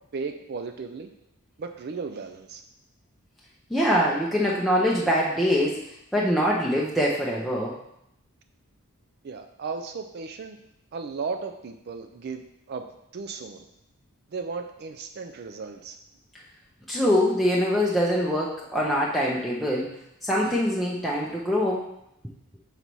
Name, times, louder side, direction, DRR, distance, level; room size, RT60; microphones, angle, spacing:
voice 1, 0.1-1.1 1.6-2.6 9.2-10.6 10.9-12.4 12.7-12.8 13.1-13.6 14.3-16.0, right 4 dB, 45° right, 6 dB, 0.4 m, -35 dB
voice 2, 3.7-7.8 16.9-21.8, equal, ahead, -5 dB, 0.6 m, -24 dB
5.6 x 4.0 x 4.6 m, 0.80 s
head